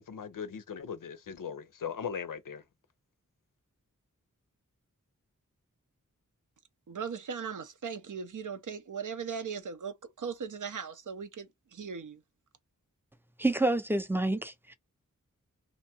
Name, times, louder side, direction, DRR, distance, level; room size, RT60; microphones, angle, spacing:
voice 1, 0.0-2.6, left 7 dB, 80° left, 0.5 m, -39 dB
voice 2, 6.9-12.2, right 6 dB, 70° right, 0.6 m, -38 dB
voice 3, 13.4-14.7, right 2 dB, 5° right, 0.5 m, -28 dB
2.6 x 2.2 x 2.7 m
wide cardioid pair, 45°, 32 cm